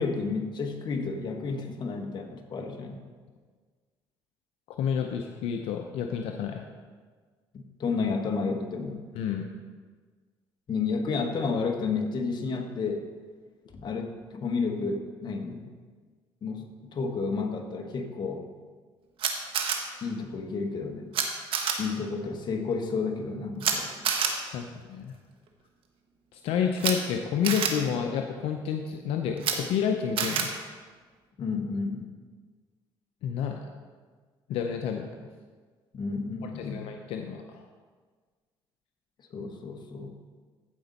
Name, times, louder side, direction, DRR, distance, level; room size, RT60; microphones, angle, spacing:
voice 1, 0.0-3.0 7.5-9.0 10.7-13.1 13.7-15.7 16.4-18.4 20.0-21.1 21.8-23.9 31.4-32.0 35.9-36.9 39.3-40.1, left 4 dB, 50° left, 4 dB, 1.3 m, -31 dB
voice 2, 4.7-6.6 9.2-9.5 24.5-25.1 26.3-30.5 33.2-33.7 34.5-35.1 36.4-37.6, left 7 dB, 80° left, 4 dB, 0.6 m, -30 dB
Camera, 19.2-19.8 21.1-21.2 21.5-21.7 23.6-23.7 24.0-24.3 26.8-26.9 27.4-27.7 29.4-29.5 30.2-30.4, right 8 dB, 65° right, 1.2 m, -26 dB
15.0 x 5.2 x 4.1 m, 1.5 s
cardioid pair, 95°, 10 cm